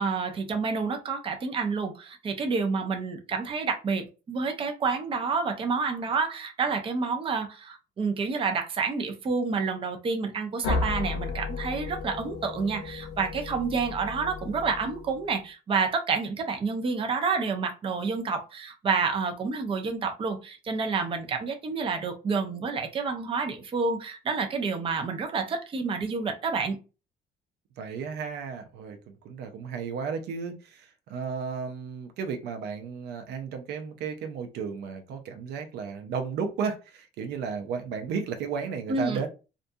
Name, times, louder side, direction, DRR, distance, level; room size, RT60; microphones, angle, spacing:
voice 1, 0.0-26.8 38.9-39.3, right 4 dB, 30° right, 0.5 m, -29 dB
sound 1, 10.6-15.3, left 4 dB, 85° left, 0.5 m, -34 dB
voice 2, 27.8-39.3, right 6 dB, 75° right, 0.5 m, -34 dB
2.5 x 2.3 x 2.6 m
cardioid pair, 110°, 17 cm